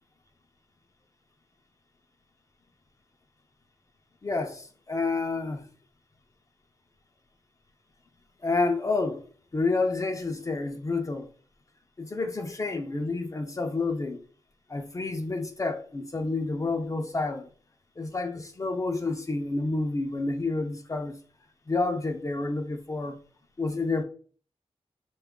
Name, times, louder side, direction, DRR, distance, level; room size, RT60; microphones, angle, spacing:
voice 1, 4.2-5.6 8.4-9.2 9.5-11.3 12.0-14.2 14.7-17.5 18.0-21.2 21.7-23.2 23.6-24.0, left 3 dB, 30° left, 0.4 m, -29 dB
4.2 x 2.2 x 3.6 m
wide cardioid pair, 130°, 11 cm